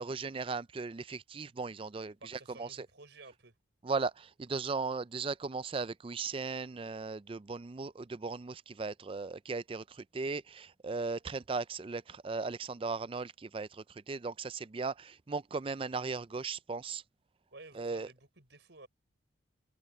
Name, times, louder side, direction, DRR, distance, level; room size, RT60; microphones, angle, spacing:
voice 1, 0.0-2.9 3.8-17.0 17.7-18.1, right 4 dB, 25° right, 0.4 m, -37 dB
voice 2, 2.2-3.5 17.5-18.9, right 3 dB, 60° right, 4.8 m, -53 dB
head